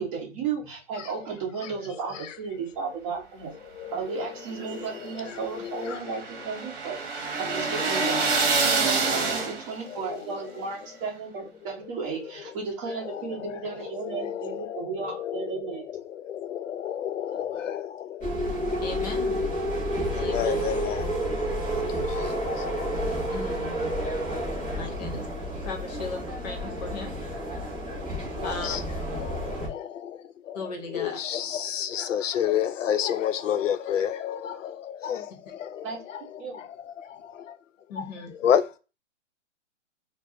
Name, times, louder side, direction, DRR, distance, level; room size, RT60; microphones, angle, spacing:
voice 1, 0.0-3.5 3.9-7.0 7.4-8.3 8.6-15.9 28.4-28.8 35.8-36.0 36.4-36.6, right 5 dB, 25° right, 0.9 m, -34 dB
voice 2, 1.6-2.4 3.6-6.1 8.0-8.1 9.0-9.5 9.8-10.6 12.2-12.3 12.9-18.6 19.1-19.2 19.9-21.3 21.7-23.3 24.6-25.0 26.6-37.6 37.9-38.8, left 9 dB, 80° left, 0.5 m, -32 dB
sound 1, 4.4-9.9, right 4 dB, 45° right, 1.2 m, -27 dB
sound 2, 18.2-29.7, equal, 5° right, 0.3 m, -30 dB
voice 3, 18.8-19.4 20.1-20.6 23.3-23.9 24.8-25.3 25.6-27.2 28.4-28.8 30.5-31.1 37.9-38.3, left 4 dB, 35° left, 0.8 m, -37 dB
4.5 x 2.0 x 2.5 m
hypercardioid pair, 145°, 38 cm